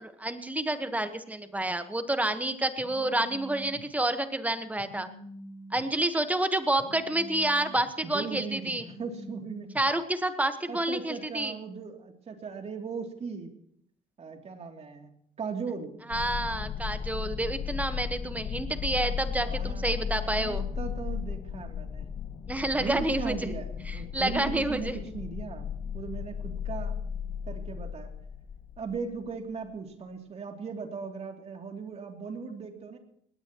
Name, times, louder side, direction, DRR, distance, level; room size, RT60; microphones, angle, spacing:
voice 1, 0.0-5.1 5.7-8.8 9.7-11.6 16.1-20.6 22.5-23.5 23.9-24.9, right 1 dB, 10° right, 9 dB, 1.3 m, -29 dB
Telephone, 2.8-3.8 4.8-5.8 6.8-7.8 8.8-9.8, left 1 dB, 65° left, 4.4 m, -46 dB
voice 2, 8.0-9.7 10.7-13.5 14.2-16.1 19.4-22.1 22.8-25.7 25.9-27.0 27.5-28.1 28.8-33.0, right 5 dB, 40° right, 3 dB, 2.9 m, -38 dB
sound 1, 16.1-29.0, left 7 dB, 35° left, 0.5 m, -35 dB
20.0 x 17.5 x 3.1 m, 0.69 s
cardioid pair, 110°, 17 cm